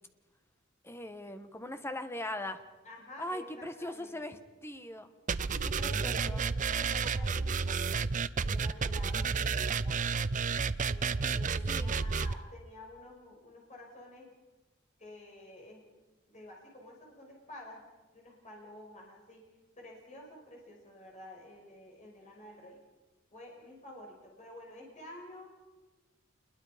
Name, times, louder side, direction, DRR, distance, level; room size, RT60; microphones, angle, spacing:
voice 1, 0.8-2.6 3.2-5.1 5.8-6.4 11.7-12.0, left 1 dB, 10° left, 8 dB, 1.4 m, -40 dB
voice 2, 2.8-4.4 5.5-7.9 8.3-10.1 10.8-14.3 15.0-15.8 16.3-17.8 18.1-19.5 19.8-22.8 23.3-25.5, left 1 dB, 35° left, -1 dB, 5.8 m, -50 dB
sound 1, 5.3-12.3, right 5 dB, 40° right, 0.6 m, -31 dB
28.0 x 21.5 x 5.2 m, 1.2 s
head